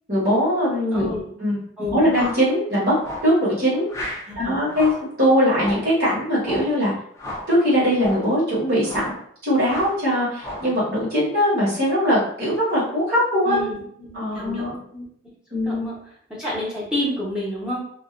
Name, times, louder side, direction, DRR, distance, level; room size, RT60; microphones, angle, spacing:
voice 1, 0.1-1.1 1.4-2.9 3.2-3.8 4.3-6.9 7.5-9.1 9.4-13.6 14.1-14.7 15.5-15.9, equal, 50° right, -9 dB, 1.0 m, -21 dB
voice 2, 1.8-2.1 4.3-4.8 13.4-15.0 15.6-16.0 16.3-17.8, left 1 dB, 5° right, -8 dB, 0.8 m, -29 dB
sound 1, 2.1-2.5 3.0-3.3 3.9-4.3 4.7-5.1 5.5-5.9 6.4-6.7 7.2-7.5 7.9-8.3 8.8-9.2 9.6-10.0 10.4-10.7, left 1 dB, 15° left, 0.4 m, -33 dB
2.4 x 2.2 x 2.4 m, 0.65 s
head